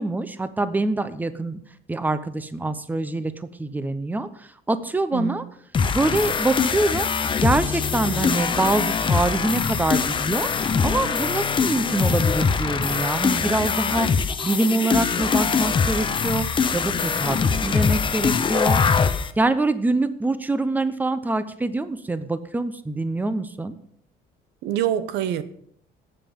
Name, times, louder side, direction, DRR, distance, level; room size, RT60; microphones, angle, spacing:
voice 1, 0.0-1.6 1.9-5.4 5.9-7.1 7.4-10.5 10.8-16.5 16.7-18.8 19.4-23.7, right 2 dB, 10° right, 0.8 m, -25 dB
sound 1, 5.7-19.3, left 5 dB, 30° left, 0.7 m, -23 dB
voice 2, 24.6-25.4, right 10 dB, 90° right, 0.8 m, -25 dB
17.5 x 7.5 x 3.7 m
cardioid pair, 110°, 17 cm